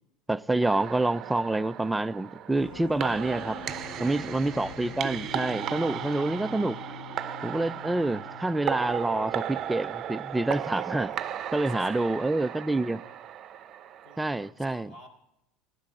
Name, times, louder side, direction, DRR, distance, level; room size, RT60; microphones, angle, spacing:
voice 1, 0.3-3.6 4.0-6.8 7.4-11.1 11.5-13.0 14.2-14.9, right 2 dB, 10° right, 0.4 m, -27 dB
sound 1, 0.6-14.5, right 10 dB, 45° right, 0.7 m, -36 dB
sound 2, 2.5-9.6, left 6 dB, 70° left, 2.8 m, -45 dB
voice 2, 11.5-12.3 14.0-15.1, left 1 dB, 45° left, 4.0 m, -53 dB
15.0 x 10.5 x 3.7 m
supercardioid pair, 100°, 0 cm